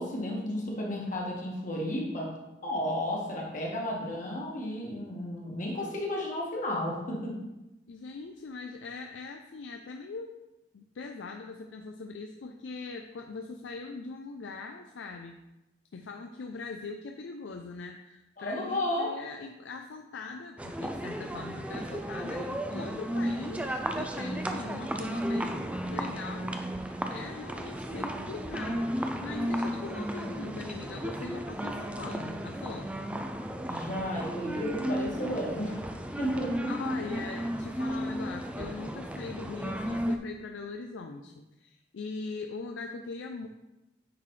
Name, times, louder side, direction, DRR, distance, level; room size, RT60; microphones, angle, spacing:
voice 1, 0.0-2.3 2.6-7.3 18.4-19.1 33.7-35.9 36.2-36.7, left 1 dB, 45° left, -3 dB, 1.5 m, -33 dB
voice 2, 7.9-10.3 10.7-15.3 15.9-32.9 36.1-36.2 36.7-43.5, left 4 dB, 75° left, 4 dB, 0.4 m, -41 dB
sound 1, 20.6-40.2, equal, 5° right, 0.3 m, -34 dB
9.3 x 3.9 x 3.2 m, 0.97 s
head